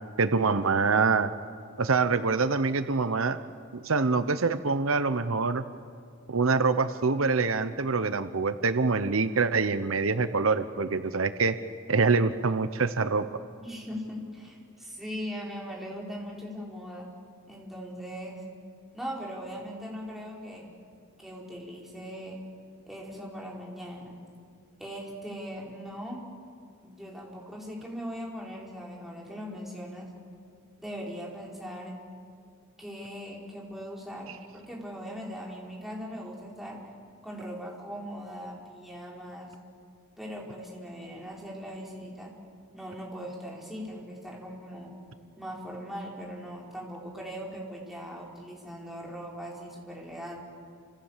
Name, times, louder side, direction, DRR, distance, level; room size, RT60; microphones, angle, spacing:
voice 1, 0.2-1.3 1.8-3.4 3.7-5.6 6.3-11.5 11.9-13.3, right 4 dB, 70° right, 11 dB, 0.9 m, -25 dB
voice 2, 13.6-17.1 17.5-18.4 18.9-20.7 21.2-22.4 22.9-24.2 24.8-26.3 26.8-30.1 30.8-32.0 32.8-36.8 37.2-39.5 40.2-42.3 42.7-44.9 45.4-50.4, equal, ahead, -3 dB, 4.9 m, -40 dB
29.5 x 26.5 x 7.4 m, 2.2 s
head